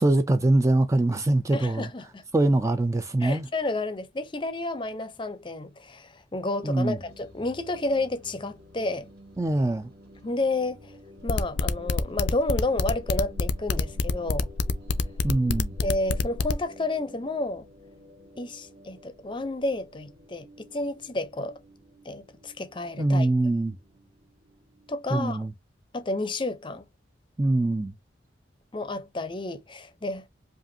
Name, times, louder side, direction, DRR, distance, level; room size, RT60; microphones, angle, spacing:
voice 1, 0.0-1.9 2.3-3.5 6.6-7.0 9.4-9.9 15.2-15.8 23.0-23.8 25.1-25.5 27.4-27.9, right 2 dB, 15° right, 0.3 m, -23 dB
voice 2, 1.5-2.2 3.2-9.1 10.2-10.9 11.2-14.5 15.8-17.7 18.4-21.6 22.0-23.3 24.9-25.5 25.9-26.8 28.7-30.2, left 2 dB, 25° left, 0.6 m, -31 dB
sound 1, 7.0-25.1, equal, 55° right, 1.7 m, -51 dB
sound 2, 11.3-16.5, left 4 dB, 75° left, 0.5 m, -26 dB
5.1 x 2.5 x 2.6 m
head